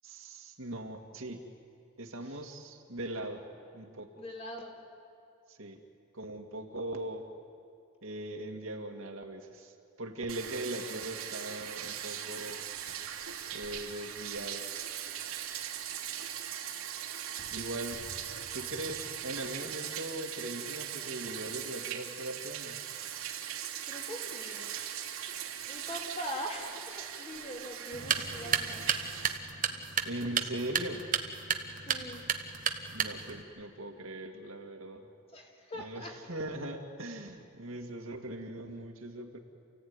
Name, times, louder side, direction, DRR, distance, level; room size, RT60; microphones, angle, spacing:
voice 1, 0.0-1.5 2.0-3.4 3.7-4.1 5.5-5.8 6.1-7.3 8.0-12.6 13.5-14.7 17.5-18.0 18.5-22.8 30.0-31.1 32.9-35.1 35.8-39.4, right 1 dB, 70° right, 2 dB, 2.2 m, -40 dB
voice 2, 4.2-4.7 23.9-24.7 25.7-28.8 31.8-32.2 35.3-36.1, equal, 30° left, 0 dB, 3.0 m, -42 dB
Bathtub (filling or washing), 10.3-29.4, right 9 dB, 85° right, 2.8 m, -40 dB
sound 1, 27.9-33.4, right 7 dB, 40° right, 1.2 m, -33 dB
28.5 x 16.0 x 9.7 m, 2.5 s
head